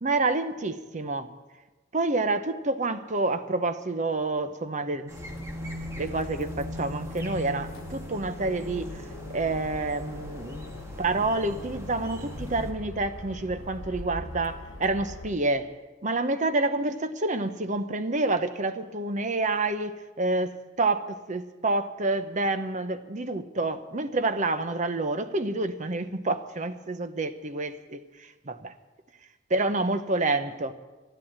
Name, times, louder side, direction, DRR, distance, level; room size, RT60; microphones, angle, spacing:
voice 1, 0.0-1.3 1.9-5.1 6.0-9.0 9.3-10.7 11.0-15.7 16.0-28.7 29.5-30.7, right 2 dB, 40° right, 0.8 m, -28 dB
sound 1, 5.1-12.7, left 1 dB, 15° right, 1.6 m, -40 dB
sound 2, 5.2-15.3, left 1 dB, 75° left, 1.6 m, -42 dB
12.5 x 11.5 x 8.7 m
head